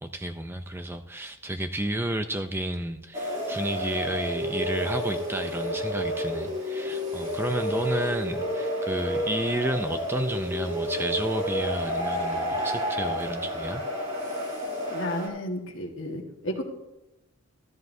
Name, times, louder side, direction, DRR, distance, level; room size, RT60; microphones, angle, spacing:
voice 1, 0.0-13.8, right 1 dB, 10° right, 8 dB, 0.4 m, -31 dB
sound 1, 3.1-15.3, equal, 30° right, 2.7 m, -30 dB
voice 2, 14.9-16.6, left 1 dB, 60° left, 2 dB, 1.5 m, -32 dB
13.5 x 13.0 x 2.7 m, 0.94 s
head